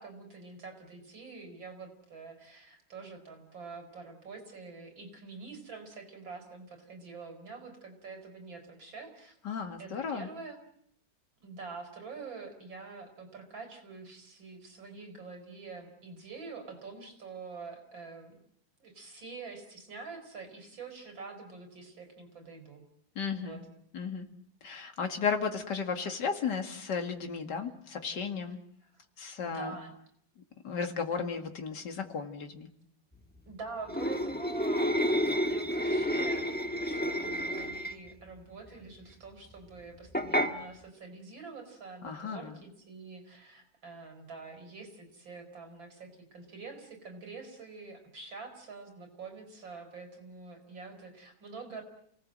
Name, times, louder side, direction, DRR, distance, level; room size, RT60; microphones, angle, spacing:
voice 1, 0.0-9.4 9.8-10.6 11.4-18.4 18.8-22.8 23.3-23.6 28.8-29.0 29.4-29.9 31.1-31.4 33.5-51.8, right 4 dB, 70° right, 5 dB, 5.2 m, -46 dB
voice 2, 9.4-10.3 23.2-23.6 23.9-24.3 24.6-28.6 29.2-29.7 30.6-32.7 42.0-42.6, left 6 dB, 60° left, 5 dB, 2.6 m, -34 dB
sound 1, 33.9-38.1 40.1-40.5, equal, 5° left, 1.0 m, -30 dB
28.5 x 18.5 x 7.7 m, 0.72 s
omnidirectional pair, 2.1 m